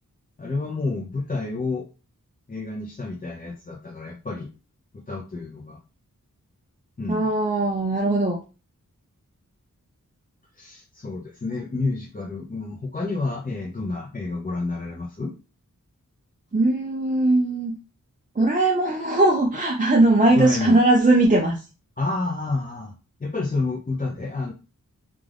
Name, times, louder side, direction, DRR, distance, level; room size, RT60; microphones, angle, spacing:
voice 1, 0.4-1.8 2.5-4.5 4.9-5.8 7.0-7.3 10.5-15.3 20.3-20.8 22.0-22.9 23.2-24.5, left 3 dB, 25° left, -1 dB, 0.6 m, -29 dB
voice 2, 7.1-8.4 16.5-17.8 18.4-21.6, right 2 dB, 25° right, -1 dB, 0.5 m, -19 dB
2.4 x 2.4 x 3.4 m, 0.33 s
wide cardioid pair, 50°, 34 cm